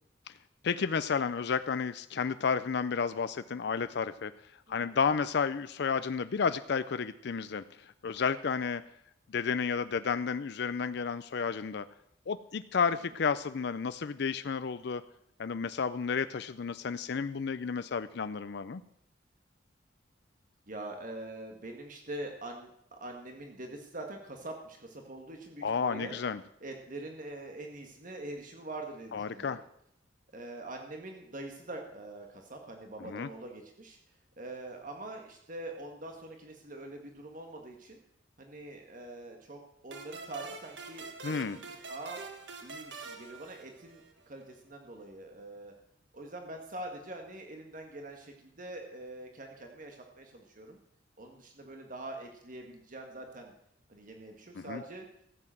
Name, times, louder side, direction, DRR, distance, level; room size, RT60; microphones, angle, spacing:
voice 1, 0.6-4.3 4.7-8.8 9.3-11.8 12.3-15.0 15.4-18.8 25.6-26.4 29.1-29.6 33.0-33.3 41.2-41.6 54.5-54.8, left 5 dB, 60° left, 12 dB, 0.5 m, -32 dB
voice 2, 4.7-5.0 20.7-26.2 26.6-29.6 30.3-34.0 34.4-38.0 38.4-41.6 41.9-42.2 42.6-45.7 46.1-50.8 51.2-53.5 53.9-55.1, right 2 dB, 45° right, 3 dB, 1.7 m, -44 dB
sound 1, 39.9-44.3, right 4 dB, 70° right, 1.7 m, -45 dB
14.5 x 7.8 x 7.5 m, 0.76 s
head